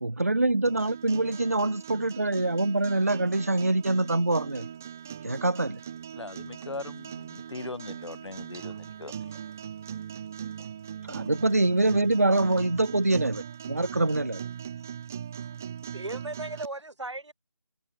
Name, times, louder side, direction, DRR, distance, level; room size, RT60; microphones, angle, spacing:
voice 1, 0.0-4.7 5.2-5.8 11.1-14.4, right 2 dB, 35° right, 0.4 m, -25 dB
sound 1, 0.7-16.7, right 8 dB, 5° right, 0.8 m, -40 dB
voice 2, 6.2-9.1, left 3 dB, 85° left, 1.1 m, -40 dB
voice 3, 15.9-17.3, right 2 dB, 90° right, 3.5 m, -36 dB
figure-of-eight pair, 175°, 14 cm